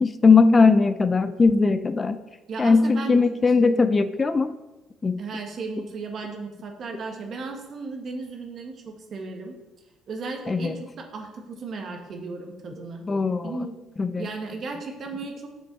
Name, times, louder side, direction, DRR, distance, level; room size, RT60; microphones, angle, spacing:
voice 1, 0.0-2.2 2.6-4.5 5.0-5.2 10.5-10.8 13.1-13.5 14.0-14.3, left 4 dB, 30° left, 12 dB, 0.4 m, -19 dB
voice 2, 2.5-3.4 5.2-9.5 10.1-13.1 13.4-13.8 14.2-15.5, right 4 dB, 50° right, 3 dB, 1.6 m, -35 dB
7.4 x 6.2 x 4.0 m, 1.1 s
supercardioid pair, 75°, 0 cm